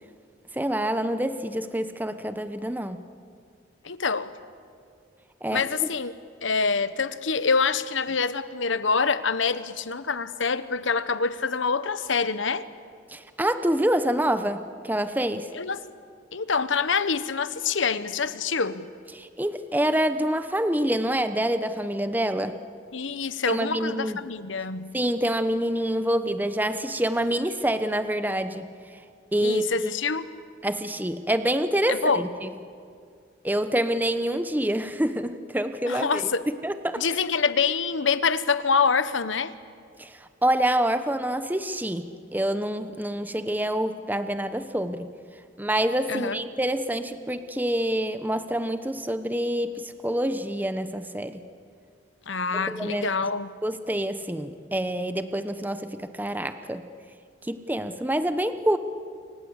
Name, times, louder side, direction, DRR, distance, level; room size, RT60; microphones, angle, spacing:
voice 1, 0.5-3.0 5.4-5.6 13.1-15.5 19.1-22.6 23.5-24.2 24.9-28.7 29.3-29.9 30.6-32.5 33.4-36.1 36.6-37.0 40.0-45.1 45.6-51.4 52.5-53.1 53.6-56.8 57.4-58.8, right 1 dB, 10° right, 10 dB, 0.9 m, -26 dB
voice 2, 3.8-4.3 5.5-6.1 6.4-12.7 15.5-15.8 16.3-18.9 22.9-24.9 29.4-30.3 31.9-32.3 35.9-36.4 37.0-39.5 46.1-46.4 52.3-53.5, left 5 dB, 85° left, 13 dB, 1.1 m, -26 dB
28.5 x 25.0 x 8.1 m, 2.3 s
head